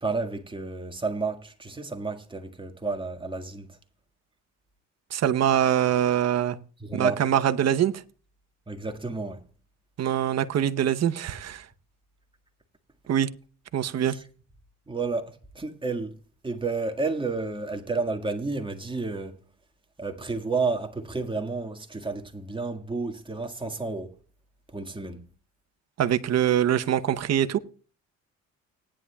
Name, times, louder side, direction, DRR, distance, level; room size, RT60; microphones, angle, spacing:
voice 1, 0.0-3.7 6.8-7.2 8.7-9.4 14.1-14.2 14.9-16.2 16.4-19.4 20.0-24.2 24.7-25.2, right 3 dB, 15° right, 1.8 m, -31 dB
voice 2, 5.1-6.6 6.9-8.0 10.0-11.7 13.1-13.3 13.7-14.2 26.0-27.6, right 10 dB, 60° right, 0.9 m, -24 dB
19.0 x 10.0 x 2.3 m
cardioid pair, 90°, 30 cm